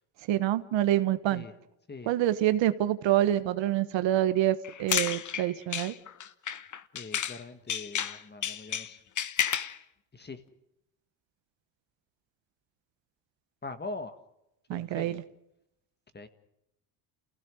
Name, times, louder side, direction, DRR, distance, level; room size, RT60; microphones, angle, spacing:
voice 1, 0.3-1.5 2.0-5.9 14.7-15.2, right 13 dB, 65° right, 12 dB, 1.3 m, -26 dB
sound 1, 4.6-7.4 7.7-9.8, left 9 dB, 40° left, 1.1 m, -32 dB
voice 2, 6.9-9.0 10.1-10.4 13.6-14.2 14.7-15.2 16.1-16.3, left 3 dB, 20° left, 10 dB, 1.8 m, -42 dB
29.0 x 16.5 x 6.4 m, 0.85 s
cardioid pair, 100°, 48 cm